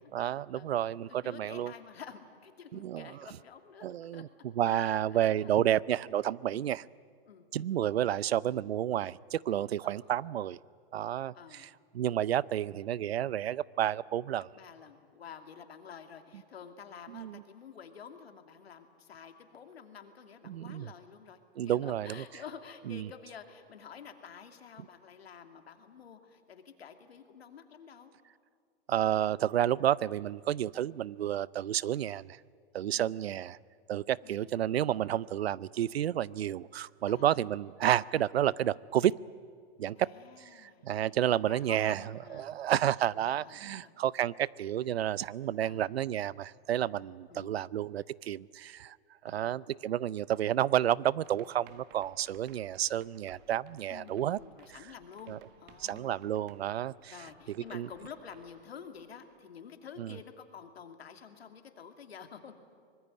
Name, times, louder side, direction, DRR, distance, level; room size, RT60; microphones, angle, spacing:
voice 1, 0.0-1.7 2.7-3.1 3.8-4.3 4.6-6.8 7.5-10.6 10.9-11.7 11.9-14.5 17.1-17.4 20.5-20.9 21.6-22.2 22.9-23.1 28.9-32.4 32.7-33.6 33.9-39.1 39.8-40.1 40.4-42.0 42.3-49.0 49.2-54.4 55.3-55.4 55.8-57.1 57.7-57.9 60.0-60.1, right 11 dB, 85° right, 23 dB, 0.6 m, -30 dB
voice 2, 1.1-3.9 4.1-4.2 4.8-5.6 6.5-6.7 7.3-7.5 9.8-10.1 11.3-11.7 14.5-28.1 32.9-33.2 34.2-34.5 37.1-37.4 40.0-40.9 41.3-42.5 43.2-43.9 45.6-45.9 47.3-47.7 49.2-49.7 53.9-56.1 57.1-62.5, left 7 dB, 85° left, 7 dB, 2.7 m, -50 dB
sound 1, 51.2-59.7, right 10 dB, 35° right, 1.5 m, -61 dB
24.5 x 20.0 x 9.7 m, 2.2 s
hypercardioid pair, 130°, 30 cm